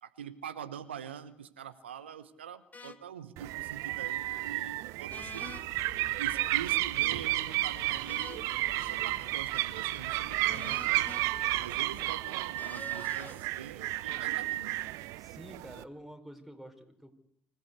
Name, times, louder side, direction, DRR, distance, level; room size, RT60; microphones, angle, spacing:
voice 1, 0.0-5.6 6.2-8.4 8.7-11.2 11.6-14.7, right 8 dB, 85° right, 12 dB, 1.1 m, -44 dB
sound 1, 2.7-3.0 5.1-5.6 8.1-8.5 10.4-11.2 12.6-13.4, left 4 dB, 25° left, 2.1 m, -47 dB
sound 2, 3.4-15.8, right 17 dB, 65° right, 0.9 m, -32 dB
sound 3, 5.1-12.1, left 2 dB, 60° left, 7.5 m, -52 dB
voice 2, 7.8-8.1 15.2-17.2, right 1 dB, ahead, 5 dB, 4.6 m, -49 dB
25.5 x 16.5 x 8.2 m, 0.72 s
figure-of-eight pair, 55°, 6 cm